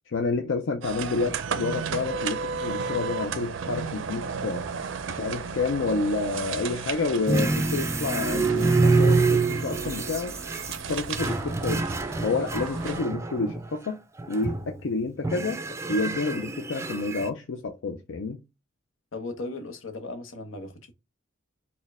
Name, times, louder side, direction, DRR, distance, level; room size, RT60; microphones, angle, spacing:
voice 1, 0.1-4.7 5.1-10.4 10.9-11.9 12.2-14.0 14.3-15.6 15.9-18.4, left 3 dB, 70° left, 0.5 m, -29 dB
sound 1, 0.8-13.0, right 5 dB, 75° right, 0.5 m, -34 dB
sound 2, 7.3-13.7 14.2-14.8 15.2-17.3, right 3 dB, 15° right, 0.4 m, -26 dB
voice 2, 19.1-20.9, left 2 dB, 85° left, 0.8 m, -37 dB
4.2 x 2.2 x 3.4 m
head